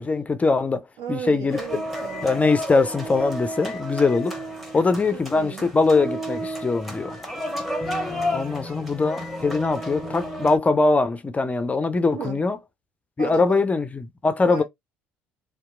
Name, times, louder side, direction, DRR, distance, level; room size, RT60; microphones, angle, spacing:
voice 1, 0.0-1.6 2.2-4.3 4.7-7.2 8.3-12.6 13.2-14.6, left 3 dB, 20° left, 0.4 m, -22 dB
voice 2, 1.0-2.5 5.1-5.7 12.1-12.4 13.2-13.6 14.5-14.6, right 8 dB, 65° right, 1.1 m, -35 dB
sound 1, 1.5-10.6, equal, ahead, 1.1 m, -31 dB
2.8 x 2.3 x 2.3 m
hypercardioid pair, 60°, 7 cm